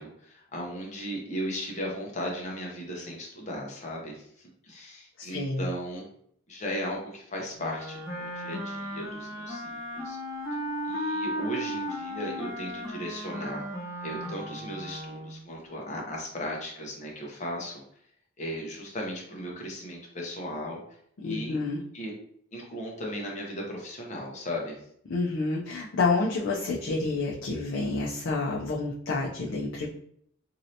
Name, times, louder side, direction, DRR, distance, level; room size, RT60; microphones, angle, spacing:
voice 1, 0.0-6.0 6.5-10.2 10.9-13.6 14.0-17.8 18.4-20.8 21.2-21.6 21.9-22.1 22.5-24.8, equal, 35° left, -1 dB, 0.8 m, -36 dB
voice 2, 5.2-5.7 21.2-21.8 25.1-29.9, left 3 dB, 65° left, -4 dB, 0.5 m, -29 dB
Wind instrument woodwind instrument, 7.6-15.4, equal, 10° right, 0.9 m, -35 dB
3.1 x 2.7 x 2.7 m, 0.67 s
head